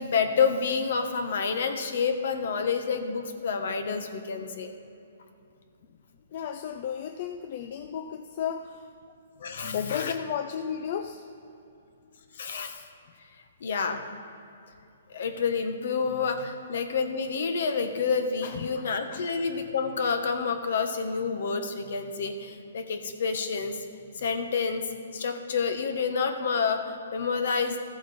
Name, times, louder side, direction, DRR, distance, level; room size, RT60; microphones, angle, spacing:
voice 1, 0.0-4.7 9.4-10.1 12.3-12.8 13.6-14.0 15.1-23.8 24.2-24.9 25.1-27.8, left 5 dB, 65° left, 7 dB, 1.1 m, -28 dB
voice 2, 6.3-8.9 9.6-11.2 18.4-19.3, left 8 dB, 45° left, 7 dB, 0.5 m, -34 dB
14.0 x 8.1 x 4.2 m, 2.7 s
hypercardioid pair, 155°, 0 cm